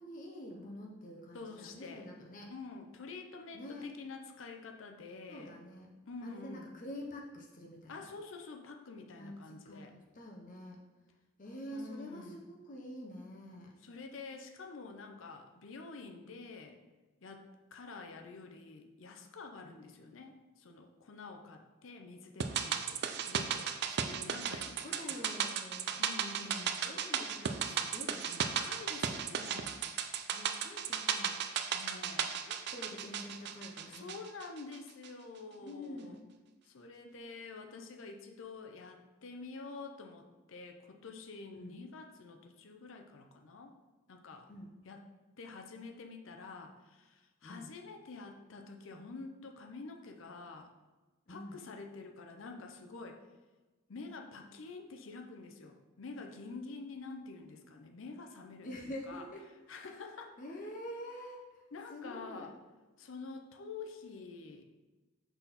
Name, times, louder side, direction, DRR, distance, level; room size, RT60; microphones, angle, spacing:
voice 1, 0.0-2.5 3.5-3.9 5.3-5.9 6.2-8.0 9.2-9.9 10.1-10.8 11.4-13.7 19.6-19.8 24.6-26.0 26.4-28.6 30.3-31.4 32.4-34.1 35.6-36.2 41.5-41.7 44.5-44.7 47.4-47.7 51.3-51.6 58.6-59.5 60.4-61.4 61.9-62.5, left 1 dB, 40° left, -1 dB, 0.7 m, -47 dB
voice 2, 1.3-2.1 2.5-5.6 6.1-6.7 7.9-9.9 11.7-12.4 13.8-16.8 17.2-25.3 26.0-26.8 28.4-29.8 31.7-32.4 33.9-36.2 36.6-43.8 44.1-44.5 44.8-45.1 45.4-50.7 51.3-53.2 53.9-59.2 59.7-60.4 61.7-62.5 63.0-64.6, left 4 dB, 75° left, 4 dB, 0.6 m, -48 dB
sound 1, 22.4-34.8 35.0-35.1, right 8 dB, 55° right, 0.4 m, -36 dB
6.0 x 4.1 x 4.1 m, 1.2 s
head